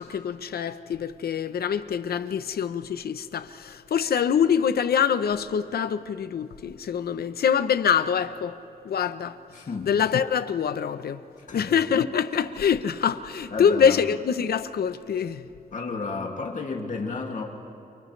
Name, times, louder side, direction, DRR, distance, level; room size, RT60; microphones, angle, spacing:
voice 1, 0.0-8.6 8.8-9.4 9.8-11.2 11.5-15.5, left 7 dB, 85° left, 0.8 m, -25 dB
voice 2, 9.5-9.9 11.5-11.7 13.5-14.0 15.7-17.4, left 4 dB, 55° left, 2.4 m, -32 dB
29.5 x 29.0 x 3.3 m
wide cardioid pair, 120°, 16 cm